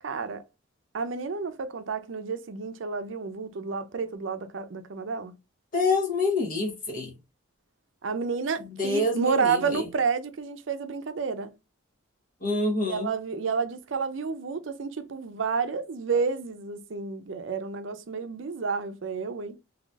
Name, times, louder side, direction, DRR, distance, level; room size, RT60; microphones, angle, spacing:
voice 1, 0.0-0.4 0.9-5.3 8.0-11.5 12.9-19.6, right 5 dB, 70° right, 0.5 m, -30 dB
voice 2, 5.7-7.1 8.8-9.8 12.4-13.1, left 2 dB, 40° left, 1.0 m, -26 dB
3.9 x 2.8 x 2.3 m
head